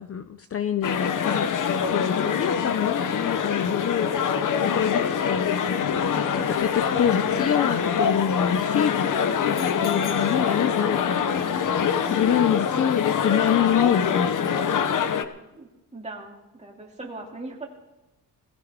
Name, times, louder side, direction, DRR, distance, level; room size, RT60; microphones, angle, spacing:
voice 1, 0.0-4.1 4.6-9.4 9.8-14.7, left 9 dB, 35° left, 11 dB, 0.5 m, -27 dB
sound 1, 0.8-15.2, left 7 dB, 55° left, 0.9 m, -24 dB
voice 2, 15.6-17.7, right 2 dB, 15° right, -1 dB, 2.7 m, -39 dB
19.0 x 15.0 x 3.7 m, 1.0 s
cardioid pair, 140°, 39 cm